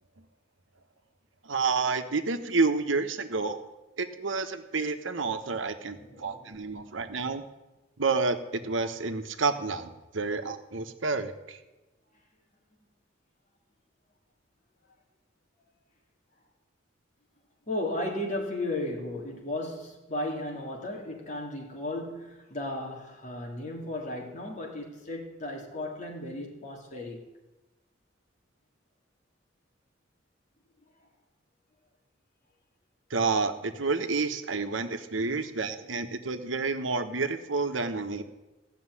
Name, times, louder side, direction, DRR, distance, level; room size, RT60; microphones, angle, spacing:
voice 1, 1.4-3.6 4.0-7.4 8.0-11.6 33.1-38.2, right 4 dB, 80° right, 1.2 m, -29 dB
voice 2, 5.9-6.6 17.7-27.2, left 1 dB, 40° left, 3.2 m, -35 dB
16.5 x 6.8 x 9.8 m
head